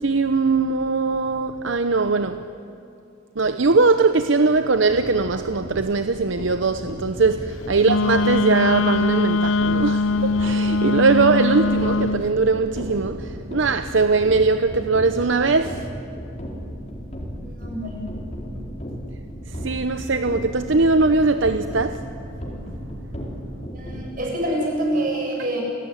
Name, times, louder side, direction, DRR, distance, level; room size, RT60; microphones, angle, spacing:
voice 1, 0.0-2.5 3.4-15.9 19.5-22.0, right 3 dB, 70° right, 0.8 m, -20 dB
sound 1, 4.9-24.0, equal, 30° left, 4.2 m, -35 dB
Wind instrument woodwind instrument, 7.8-12.2, left 3 dB, 80° left, 0.6 m, -21 dB
voice 2, 17.4-18.1 23.7-25.6, right 1 dB, 45° right, 7.3 m, -26 dB
29.5 x 17.5 x 10.0 m
head